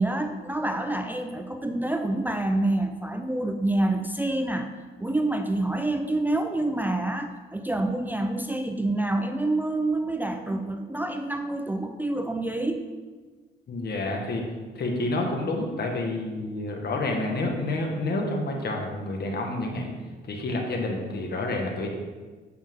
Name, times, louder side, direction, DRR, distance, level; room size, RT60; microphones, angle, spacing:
voice 1, 0.0-4.7 5.0-12.8, right 2 dB, 10° right, 6 dB, 0.5 m, -27 dB
voice 2, 13.7-14.4 14.7-19.9 20.3-21.9, left 2 dB, 55° left, 1 dB, 1.7 m, -29 dB
8.4 x 7.1 x 3.7 m, 1.4 s
cardioid pair, 90°, 20 cm